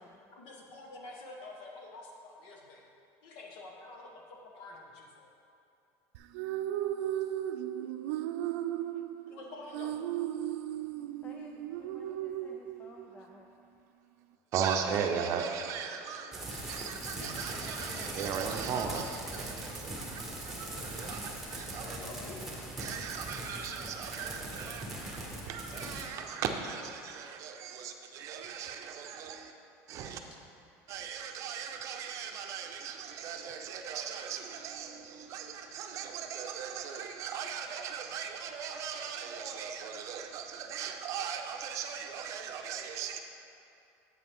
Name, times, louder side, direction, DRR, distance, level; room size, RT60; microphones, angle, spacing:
voice 1, 0.4-2.8 3.2-5.3 9.3-10.0 21.7-22.4, left 2 dB, 60° left, 1.5 m, -48 dB
sound 1, 6.1-13.2, right 12 dB, 85° right, 0.4 m, -36 dB
voice 2, 11.2-13.5, left 4 dB, 20° left, 0.4 m, -54 dB
voice 3, 14.5-22.0 22.8-24.8 25.4-29.5 29.9-30.2 30.9-43.2, right 7 dB, 45° right, 0.6 m, -38 dB
sound 2, 16.3-26.0, right 1 dB, 5° right, 1.3 m, -40 dB
8.4 x 8.0 x 3.6 m
cardioid pair, 155°, 8 cm